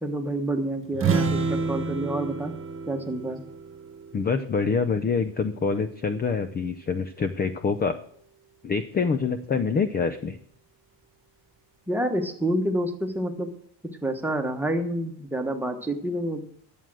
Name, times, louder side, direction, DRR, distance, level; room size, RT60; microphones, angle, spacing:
voice 1, 0.0-2.5 2.9-3.4 11.9-13.5 14.0-16.4, right 1 dB, 5° right, 4 dB, 1.3 m, -28 dB
sound 1, 0.9-4.7, right 4 dB, 25° right, 1.3 m, -29 dB
voice 2, 4.1-7.9 8.6-10.4, left 5 dB, 20° left, 12 dB, 0.5 m, -26 dB
11.0 x 7.6 x 6.2 m, 0.64 s
cardioid pair, 135°, 47 cm